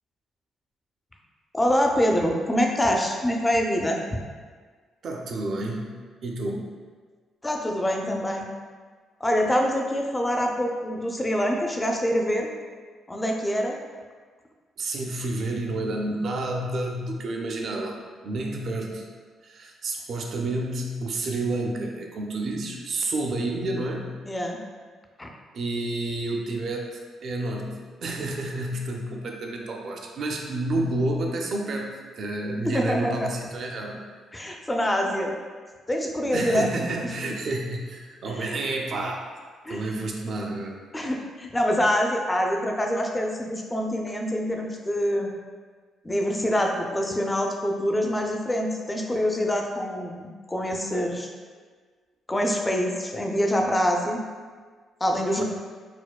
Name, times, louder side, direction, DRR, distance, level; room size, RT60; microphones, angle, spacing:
voice 1, 1.5-4.0 7.4-8.5 9.2-12.5 13.1-13.8 24.3-24.6 25.2-25.3 32.6-33.2 34.3-35.3 35.9-36.9 38.3-38.6 39.6-39.8 40.9-45.3 46.0-51.3 52.3-54.2 55.0-55.4, equal, 15° left, 2 dB, 0.4 m, -25 dB
voice 2, 5.0-5.9 6.2-6.6 14.8-18.0 18.2-19.1 19.4-24.1 25.5-34.0 36.3-39.3 39.7-40.8 55.4-55.5, right 2 dB, 60° right, 1 dB, 0.5 m, -30 dB
4.2 x 2.2 x 2.3 m, 1.5 s
cardioid pair, 90°, 0 cm